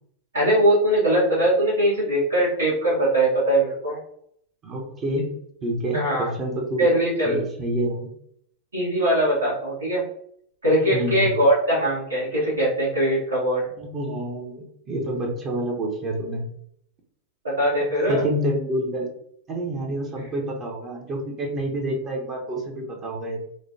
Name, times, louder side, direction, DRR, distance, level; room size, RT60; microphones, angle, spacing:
voice 1, 0.3-4.0 5.9-6.3 6.8-7.4 8.7-10.0 10.6-13.7 17.4-18.2, right 1 dB, 70° right, -7 dB, 1.4 m, -21 dB
voice 2, 4.6-5.3 5.6-7.0 7.2-8.1 10.9-11.3 13.8-16.4 18.1-19.1 19.5-23.4, right 1 dB, 30° right, 0 dB, 0.8 m, -28 dB
4.9 x 2.3 x 2.7 m, 0.68 s
figure-of-eight pair, 90°, 0 cm